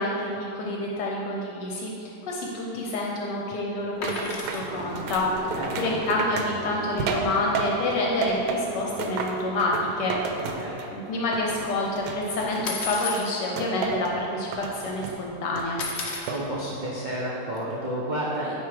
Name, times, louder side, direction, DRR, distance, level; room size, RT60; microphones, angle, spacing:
voice 1, 0.0-5.3 5.7-10.2 10.9-15.8, left 2 dB, 75° left, -2 dB, 1.3 m, -28 dB
sound 1, 4.0-4.6 6.8-6.9 7.2-7.4 7.6-7.7 8.5-8.6 9.1-9.5 9.8-11.3 12.6-13.2 14.0-14.1 14.4-14.8 15.8-16.3 17.5-17.6, left 4 dB, 55° left, 0.8 m, -34 dB
sound 2, 4.0-7.9 8.2-11.0 11.3-13.0 13.6-14.1 14.5-15.2 15.6-16.5 16.8-17.2, right 4 dB, 75° right, 1.1 m, -32 dB
Truck, 4.6-11.4, right 1 dB, 30° right, 1.4 m, -39 dB
voice 2, 5.5-6.0 10.5-10.8 16.3-18.5, right 1 dB, 55° right, -6 dB, 0.5 m, -31 dB
9.2 x 3.1 x 4.8 m, 2.7 s
omnidirectional pair, 1.9 m